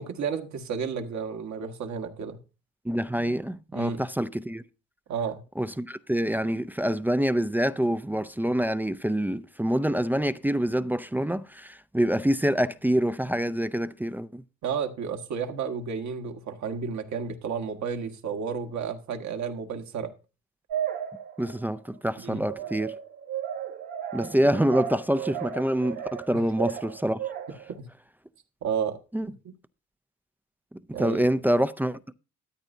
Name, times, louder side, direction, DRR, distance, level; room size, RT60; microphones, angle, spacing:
voice 1, 0.0-2.4 3.7-4.0 5.1-5.4 14.6-20.1 22.2-22.4 26.3-26.4 27.8-27.9 28.6-29.0 30.9-31.3, right 6 dB, 65° right, 1.6 m, -32 dB
voice 2, 2.8-4.6 5.6-14.4 21.4-22.9 24.1-27.2 29.1-29.3 31.0-32.1, equal, 5° right, 0.4 m, -26 dB
sound 1, 20.7-21.7 22.5-27.7, right 10 dB, 90° right, 2.7 m, -35 dB
13.5 x 8.7 x 2.7 m
cardioid pair, 90°, 30 cm